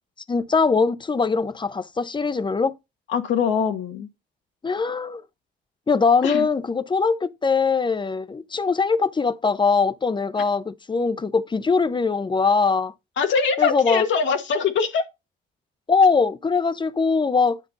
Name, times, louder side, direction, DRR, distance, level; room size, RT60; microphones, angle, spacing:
voice 1, 0.3-2.7 4.6-5.2 5.9-12.9 13.6-14.0 15.9-17.6, left 4 dB, 25° left, 0.8 m, -21 dB
voice 2, 3.1-4.1 6.2-6.5 13.2-15.0, left 6 dB, 70° left, 1.4 m, -22 dB
9.9 x 5.1 x 4.1 m
cardioid pair, 90°, 20 cm